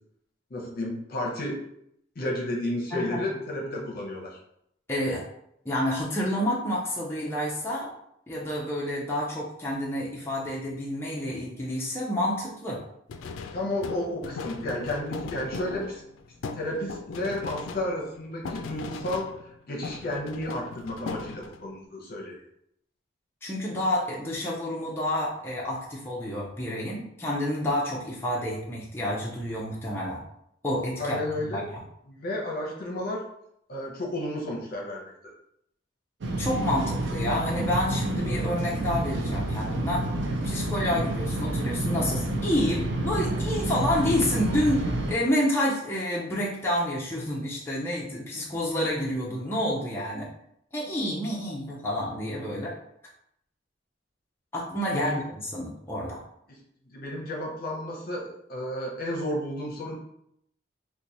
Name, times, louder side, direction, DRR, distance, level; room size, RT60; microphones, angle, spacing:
voice 1, 0.5-1.6 2.1-4.4 13.5-16.0 16.5-19.3 19.7-22.4 31.0-31.7 32.1-33.2 33.7-35.3 54.9-55.2 56.9-60.0, left 1 dB, 50° left, -1 dB, 0.8 m, -32 dB
voice 2, 4.9-5.2 5.6-7.9 8.3-12.8 23.4-30.2 30.6-31.8 36.4-40.1 40.4-50.3 50.7-52.7 54.5-56.2, left 1 dB, 15° left, -5 dB, 0.6 m, -29 dB
sound 1, 13.1-19.6 19.8-21.7, left 4 dB, 85° left, 0.3 m, -39 dB
sound 2, 36.2-45.1, right 2 dB, 65° right, 0.5 m, -29 dB
3.0 x 2.2 x 4.0 m, 0.74 s
head